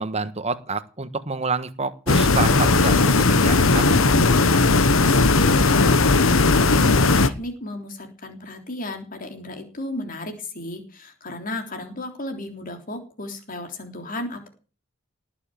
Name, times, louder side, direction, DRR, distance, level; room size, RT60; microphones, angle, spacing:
voice 1, 0.0-4.1, right 3 dB, 30° right, 12 dB, 1.3 m, -28 dB
sound 1, 2.1-7.3, left 3 dB, 80° left, 1.2 m, -17 dB
voice 2, 5.0-6.0 6.5-14.5, left 1 dB, 45° left, 5 dB, 3.4 m, -34 dB
19.0 x 7.3 x 9.1 m, 0.38 s
head